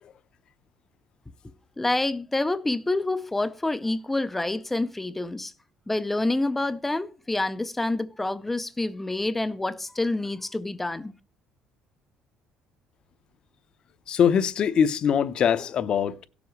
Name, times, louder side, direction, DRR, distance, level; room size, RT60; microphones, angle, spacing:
voice 1, 1.8-5.5 5.9-11.1, left 2 dB, 10° left, 0.5 m, -27 dB
voice 2, 14.1-16.2, left 7 dB, 40° left, 0.8 m, -22 dB
17.5 x 7.1 x 3.1 m
cardioid pair, 160°, 2 cm